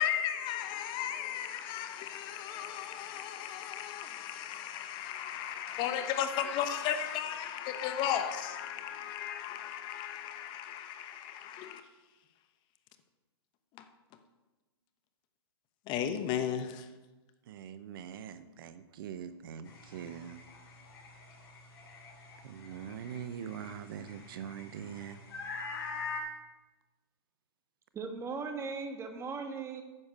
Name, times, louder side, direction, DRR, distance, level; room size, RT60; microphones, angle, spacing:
voice 1, 0.0-11.8 15.9-16.9, left 9 dB, 35° left, 1.0 m, -35 dB
voice 2, 17.4-20.4 22.4-25.2, right 8 dB, 60° right, 0.7 m, -43 dB
sound 1, 19.7-26.2, left 4 dB, 60° left, 2.6 m, -45 dB
voice 3, 27.9-29.8, right 4 dB, 20° right, 1.4 m, -38 dB
9.7 x 7.1 x 6.6 m
hypercardioid pair, 120°, 13 cm